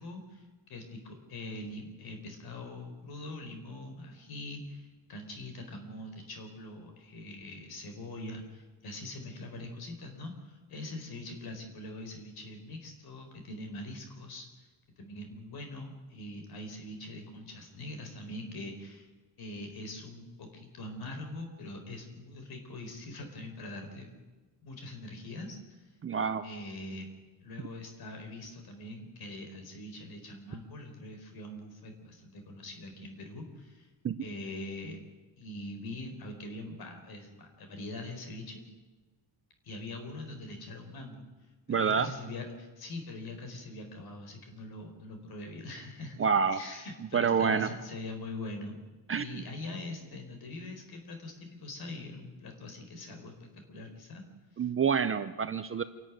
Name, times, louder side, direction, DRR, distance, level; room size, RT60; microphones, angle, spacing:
voice 1, 0.0-14.7 15.0-19.1 19.4-24.1 24.6-25.9 26.4-27.1 27.4-33.9 34.2-35.0 35.4-38.7 39.6-41.3 41.7-46.2 46.5-48.7 49.1-54.2, left 2 dB, 50° left, 5 dB, 4.4 m, -43 dB
voice 2, 26.0-26.4 34.0-34.2 41.7-42.1 46.2-46.6 47.1-47.7 49.1-49.4 54.6-55.8, right 6 dB, 30° right, 10 dB, 0.7 m, -27 dB
27.0 x 12.5 x 9.5 m, 1.2 s
cardioid pair, 175°, 47 cm